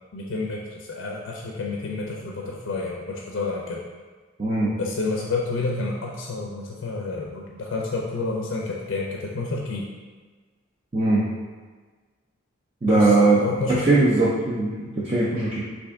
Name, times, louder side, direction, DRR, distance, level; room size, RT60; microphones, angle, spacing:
voice 1, 0.1-3.8 4.8-9.8 12.9-13.9, left 3 dB, 65° left, -1 dB, 0.4 m, -29 dB
voice 2, 4.4-4.7 10.9-11.2 12.8-13.4 13.7-15.6, right 2 dB, 30° right, -8 dB, 0.4 m, -20 dB
3.3 x 2.6 x 3.5 m, 1.4 s
head